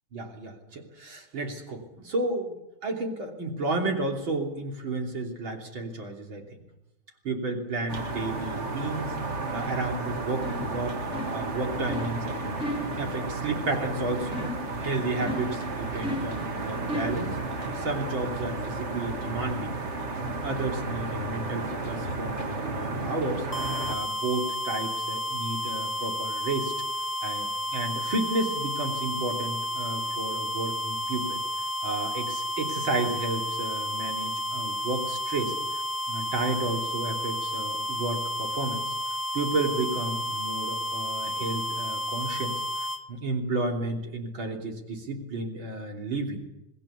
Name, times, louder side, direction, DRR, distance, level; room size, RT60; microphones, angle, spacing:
voice 1, 0.1-2.6 2.8-6.6 7.2-11.0 11.3-12.6 13.0-14.4 14.8-17.4 17.8-19.8 20.4-23.5 23.9-26.7 27.2-31.4 31.8-35.8 36.1-38.8 39.3-46.4, right 2 dB, 75° right, 2 dB, 3.9 m, -32 dB
sound 1, 7.9-24.0, right 2 dB, 35° right, 1.9 m, -33 dB
sound 2, 10.4-10.7 11.1-11.5 11.9-12.1 12.6-12.9 14.3-14.7 15.2-15.6 16.0-16.4 16.9-17.2, equal, ahead, 7.0 m, -33 dB
sound 3, 23.5-43.0, left 1 dB, 15° left, 0.6 m, -31 dB
27.0 x 19.5 x 7.1 m, 0.93 s
omnidirectional pair, 2.2 m